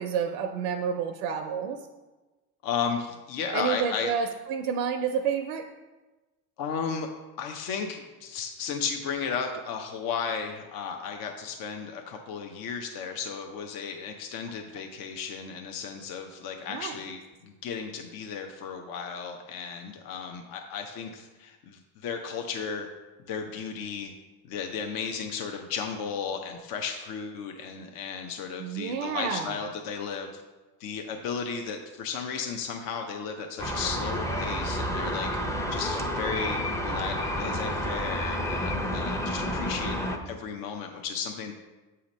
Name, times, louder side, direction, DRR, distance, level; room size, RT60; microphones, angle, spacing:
voice 1, 0.0-1.8 3.5-5.7 16.7-17.0 28.6-29.6, right 7 dB, 80° right, 4 dB, 0.6 m, -29 dB
voice 2, 2.6-4.1 6.6-7.1 7.4-22.9 23.3-24.1 24.4-30.4 30.8-35.3 35.7-40.0 40.3-41.5, left 6 dB, 55° left, 4 dB, 0.7 m, -34 dB
sound 1, 33.6-40.2, equal, 5° left, 0.5 m, -30 dB
7.4 x 2.9 x 5.1 m, 1.2 s
supercardioid pair, 90°, 42 cm